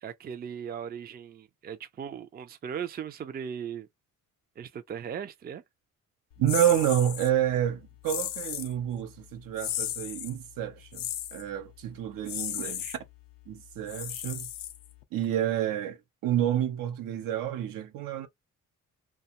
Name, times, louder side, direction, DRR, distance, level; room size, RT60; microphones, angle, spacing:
voice 1, 0.0-3.9 4.6-5.6 12.6-13.0, right 8 dB, 30° right, 0.4 m, -38 dB
voice 2, 6.4-12.8 13.5-14.5 15.1-16.0 16.2-18.3, right 11 dB, 80° right, 0.7 m, -29 dB
sound 1, 6.5-7.3 8.0-8.7 9.6-10.3 10.9-11.4 12.2-13.0 13.9-15.0, left 11 dB, 80° left, 0.5 m, -35 dB
2.4 x 2.3 x 2.8 m
cardioid pair, 80°, 33 cm